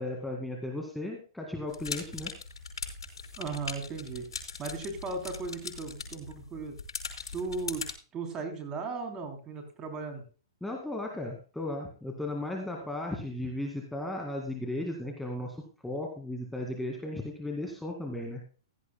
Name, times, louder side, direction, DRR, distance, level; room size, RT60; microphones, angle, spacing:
voice 1, 0.0-2.3 10.6-18.4, left 1 dB, 5° left, 0 dB, 2.0 m, -36 dB
sound 1, 1.7-7.9, left 5 dB, 85° left, 5.3 m, -40 dB
voice 2, 3.4-4.2 4.6-6.8 7.3-7.9 8.1-10.2 12.6-12.7, right 4 dB, 25° right, 5 dB, 3.4 m, -36 dB
16.0 x 12.5 x 2.2 m, 0.37 s
hypercardioid pair, 140°, 3 cm